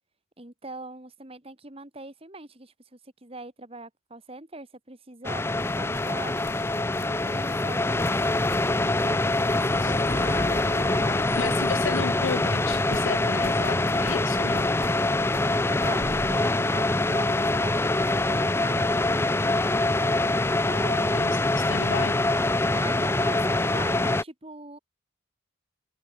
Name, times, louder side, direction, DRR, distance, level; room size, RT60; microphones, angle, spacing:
voice 1, 0.4-5.4 5.8-8.1 9.0-11.0 15.7-17.9 20.6-21.5 22.7-24.8, right 2 dB, 30° right, 1.8 m, -43 dB
sound 1, 5.2-24.2, left 2 dB, 10° left, 0.5 m, -24 dB
sound 2, 5.6-12.0 12.3-16.4, left 2 dB, 45° left, 4.0 m, -41 dB
sound 3, 7.0-17.1, equal, 25° left, 5.0 m, -47 dB
voice 2, 11.4-14.8 21.1-22.2, left 6 dB, 70° left, 0.5 m, -33 dB
head